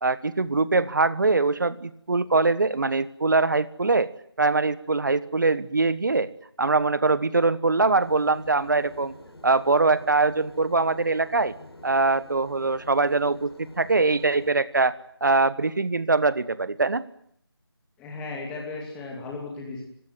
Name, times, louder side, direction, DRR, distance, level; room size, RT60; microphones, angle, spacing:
voice 1, 0.0-4.1 4.4-6.3 6.6-9.1 9.4-11.5 11.8-13.5 13.8-14.9 15.2-17.0, right 3 dB, 50° right, 17 dB, 1.4 m, -22 dB
sound 1, 8.0-14.5, left 2 dB, 70° left, 5.2 m, -47 dB
voice 2, 18.0-19.8, left 3 dB, 5° left, -1 dB, 2.6 m, -35 dB
29.5 x 17.0 x 9.5 m, 0.69 s
figure-of-eight pair, 170°, 14 cm